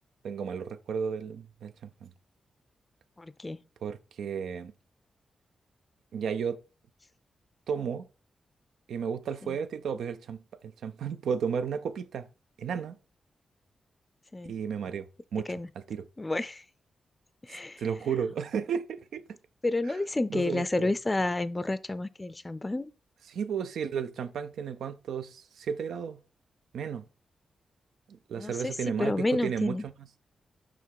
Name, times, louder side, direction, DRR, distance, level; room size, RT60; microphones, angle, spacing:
voice 1, 0.2-2.1 3.8-4.7 6.1-6.6 7.7-8.1 8.9-12.3 12.6-13.0 14.5-15.1 15.3-15.5 15.9-16.1 17.8-19.2 20.3-20.9 23.3-26.2 26.7-27.0 28.1-30.1, right 7 dB, 85° right, 0.4 m, -33 dB
voice 2, 3.2-3.6 9.4-9.6 14.3-14.5 15.5-15.7 16.2-16.6 17.4-17.8 19.6-22.9 28.4-29.8, left 2 dB, 25° left, 0.4 m, -30 dB
5.9 x 3.5 x 4.6 m
cardioid pair, 60°, 0 cm